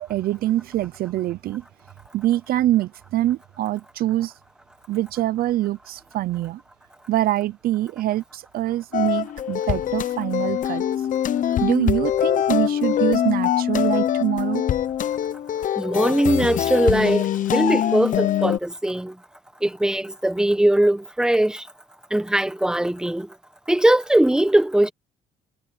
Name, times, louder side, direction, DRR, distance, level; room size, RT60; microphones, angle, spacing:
voice 1, 0.0-1.6 2.1-4.3 4.9-6.6 7.1-10.8 11.6-14.6, right 14 dB, 60° right, 0.5 m, -24 dB
sound 1, 8.9-18.6, left 10 dB, 50° left, 0.9 m, -23 dB
voice 2, 15.8-19.1 19.6-21.6 22.1-23.3 23.7-24.9, right 1 dB, 5° right, 1.2 m, -20 dB
cardioid pair, 110°, 17 cm